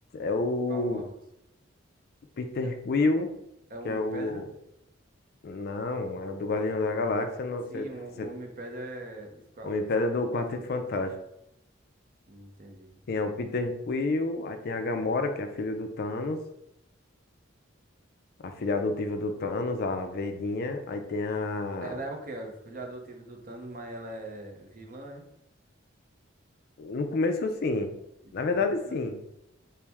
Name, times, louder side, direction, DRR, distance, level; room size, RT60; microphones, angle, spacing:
voice 1, 0.1-1.0 2.4-3.3 3.8-4.5 5.4-7.9 8.2-8.3 9.6-11.2 13.1-16.4 18.4-22.0 26.8-27.9 28.3-29.2, left 3 dB, 50° left, 6 dB, 0.4 m, -29 dB
voice 2, 0.7-1.2 2.6-2.7 3.7-4.5 7.7-9.8 10.3-10.4 10.7-10.8 12.3-13.0 21.8-25.2 28.2-29.0, right 2 dB, 45° right, 3 dB, 0.6 m, -41 dB
4.3 x 2.0 x 3.4 m, 0.81 s
head